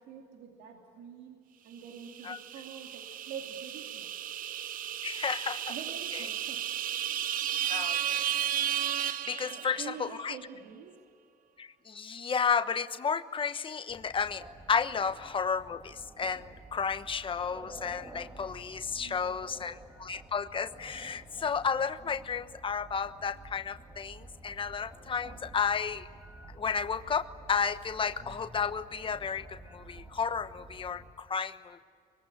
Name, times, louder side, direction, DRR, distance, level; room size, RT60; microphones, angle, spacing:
voice 1, 0.0-1.4 1.6-4.1 5.7-6.6 9.5-11.0 18.9-19.6, right 7 dB, 80° right, 2 dB, 2.6 m, -46 dB
sound 1, 2.1-10.1, right 11 dB, 55° right, 0.8 m, -34 dB
voice 2, 5.0-5.7 6.1-6.3 7.7-8.5 9.0-10.4 11.6-26.1 26.6-31.8, left 6 dB, 30° left, 11 dB, 1.1 m, -33 dB
sound 2, 13.9-31.1, right 2 dB, 15° right, 2.9 m, -51 dB
24.5 x 20.5 x 9.9 m, 2.2 s
cardioid pair, 110°, 17 cm